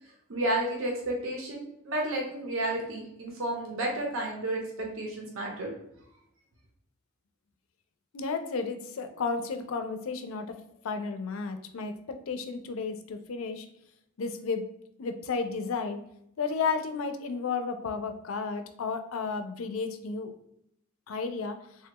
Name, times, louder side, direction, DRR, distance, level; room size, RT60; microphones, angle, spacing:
voice 1, 0.3-5.7, right 1 dB, 80° right, 0 dB, 0.6 m, -31 dB
voice 2, 8.1-10.6 10.8-13.7 14.2-14.7 15.0-16.0 16.4-20.3 21.1-21.6, left 4 dB, 80° left, 7 dB, 0.4 m, -32 dB
3.4 x 2.2 x 2.8 m, 0.76 s
head